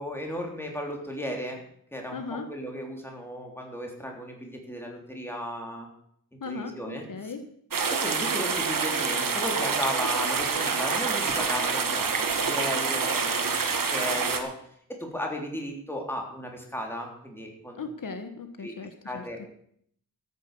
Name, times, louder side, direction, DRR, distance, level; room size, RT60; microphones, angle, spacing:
voice 1, 0.0-1.6 1.9-5.9 6.5-7.3 7.9-14.5 14.9-17.8 18.6-18.7 19.0-19.5, equal, 5° left, 1 dB, 3.5 m, -35 dB
voice 2, 2.1-2.5 6.4-7.4 17.8-19.5, left 4 dB, 75° left, 8 dB, 1.3 m, -38 dB
sound 1, 7.7-14.4, right 5 dB, 90° right, 1.6 m, -27 dB
13.0 x 9.5 x 6.8 m, 0.66 s
wide cardioid pair, 115°, 33 cm